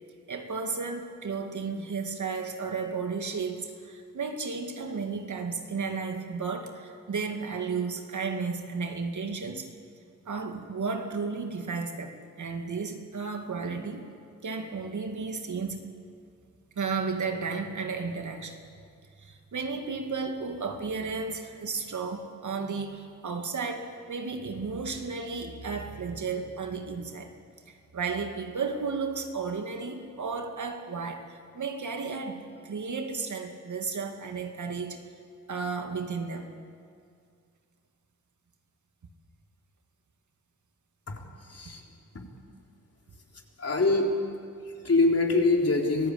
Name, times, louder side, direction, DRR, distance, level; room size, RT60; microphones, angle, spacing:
voice 1, 0.3-9.7 10.3-14.1 14.4-15.9 16.8-18.6 19.2-27.3 27.7-35.0 35.5-36.5 41.6-41.7, right 4 dB, 60° right, 5 dB, 2.3 m, -33 dB
voice 2, 41.5-41.8 43.6-44.1 44.7-46.1, left 3 dB, 45° left, 0 dB, 3.9 m, -24 dB
24.5 x 15.5 x 8.8 m, 2.3 s
cardioid pair, 65°, 34 cm